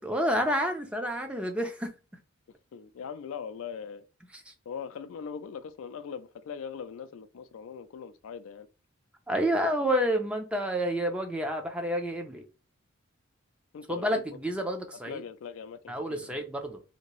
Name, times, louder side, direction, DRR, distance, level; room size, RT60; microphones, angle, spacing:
voice 1, 0.0-1.9 4.5-4.6 9.3-12.4 13.9-15.2 15.9-16.8, equal, 5° right, 0.4 m, -29 dB
voice 2, 2.7-4.1 4.7-8.7 13.7-14.4 15.0-16.5, left 6 dB, 70° left, 0.3 m, -41 dB
2.8 x 2.6 x 2.9 m
head